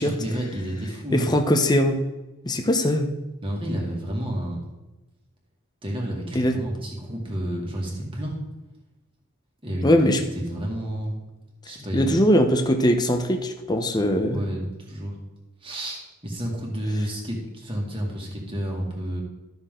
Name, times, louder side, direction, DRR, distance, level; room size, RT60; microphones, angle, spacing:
voice 1, 0.0-1.3 3.4-4.7 5.8-8.4 9.6-11.2 11.7-12.2 14.3-15.2 15.6-19.2, right 1 dB, 25° right, -2 dB, 2.1 m, -30 dB
voice 2, 1.1-2.0 2.4-3.1 6.3-6.6 9.8-10.2 11.9-14.4, equal, 20° left, 5 dB, 0.8 m, -21 dB
13.0 x 6.6 x 3.8 m, 1.1 s
head